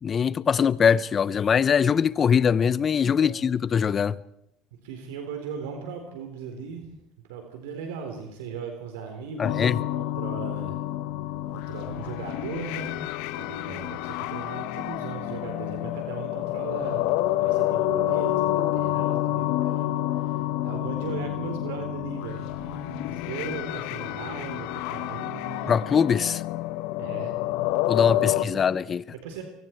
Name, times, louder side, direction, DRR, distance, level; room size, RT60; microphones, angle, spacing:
voice 1, 0.0-4.2 9.4-9.8 25.7-26.4 27.9-29.0, left 7 dB, 35° left, 0.8 m, -22 dB
voice 2, 3.0-3.4 4.8-6.9 7.3-10.8 11.5-13.0 13.3-25.8 27.0-27.3 28.0-28.6 29.1-29.4, right 6 dB, 85° right, 4.0 m, -38 dB
sound 1, 9.4-28.4, left 14 dB, 70° left, 1.1 m, -29 dB
24.5 x 23.5 x 4.7 m
supercardioid pair, 95°, 0 cm